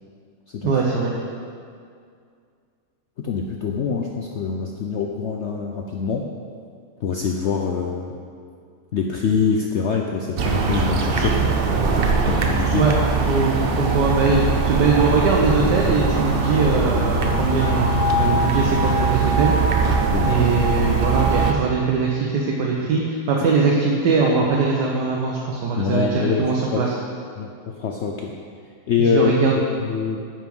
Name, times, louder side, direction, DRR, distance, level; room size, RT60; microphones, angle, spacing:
voice 1, 0.6-1.1 12.8-12.9 13.3-19.5 20.3-26.9 29.0-29.6, right 4 dB, 80° right, -2 dB, 1.5 m, -21 dB
voice 2, 3.2-6.3 7.0-8.1 8.9-11.6 12.2-12.9 20.1-20.5 25.7-26.4 26.7-26.8 27.4-28.3 28.9-29.3 29.8-30.2, left 6 dB, 70° left, 1 dB, 0.6 m, -24 dB
sound 1, 10.4-21.5, right 3 dB, 55° right, 0.6 m, -21 dB
9.3 x 6.0 x 5.4 m, 2.3 s
omnidirectional pair, 1.8 m